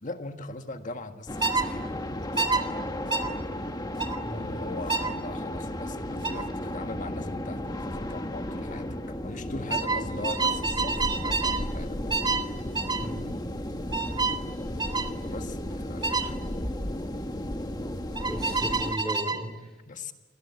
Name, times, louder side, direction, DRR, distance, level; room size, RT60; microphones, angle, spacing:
voice 1, 0.0-2.9 4.3-12.5 15.2-16.5 19.8-20.1, left 2 dB, 40° left, 6 dB, 1.7 m, -40 dB
sound 1, 1.3-19.0, left 1 dB, 20° left, 1.4 m, -34 dB
sound 2, 1.4-1.7 2.4-2.6 3.1-3.3 4.0-4.2 4.9-5.1 6.2-6.4 7.9-8.1 8.4-8.8 9.7-11.6 12.1-12.5 12.8-13.1 13.9-14.4 14.8-15.1 16.0-16.3 18.2-19.4, right 4 dB, 25° right, 1.8 m, -28 dB
voice 2, 18.3-19.7, equal, 5° left, 4 dB, 3.0 m, -36 dB
28.5 x 21.5 x 8.4 m, 1.2 s
head